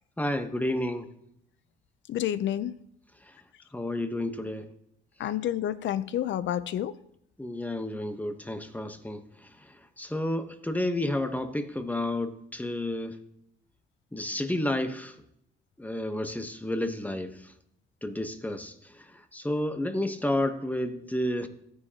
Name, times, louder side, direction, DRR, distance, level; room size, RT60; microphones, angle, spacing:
voice 1, 0.2-1.1 3.7-4.7 7.4-9.2 10.0-13.1 14.1-15.1 15.8-17.5 18.0-18.7 19.3-21.5, left 1 dB, 10° left, 1.0 m, -30 dB
voice 2, 2.1-2.8 5.2-7.0, left 11 dB, 70° left, 0.6 m, -29 dB
14.0 x 9.5 x 2.9 m
cardioid pair, 90°, 20 cm